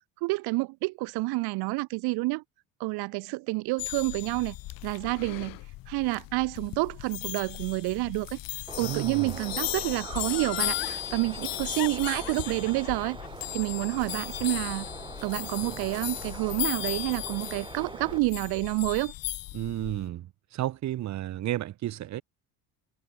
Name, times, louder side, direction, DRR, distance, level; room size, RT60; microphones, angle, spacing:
voice 1, 0.2-2.4 2.8-4.5 4.8-5.6 5.9-8.4 8.8-13.2 13.5-14.9 15.2-19.1, right 24 dB, 80° right, 1.0 m, -29 dB
sound 1, 3.8-20.1, left 19 dB, 60° left, 1.0 m, -36 dB
Bird, 8.7-18.2, right 3 dB, 15° right, 2.1 m, -43 dB
voice 2, 8.8-9.4 19.5-22.2, right 13 dB, 45° right, 1.2 m, -32 dB
Laughter, 10.3-11.0 11.8-14.9 15.2-15.3, left 27 dB, 85° left, 1.1 m, -39 dB
cardioid pair, 130°, 38 cm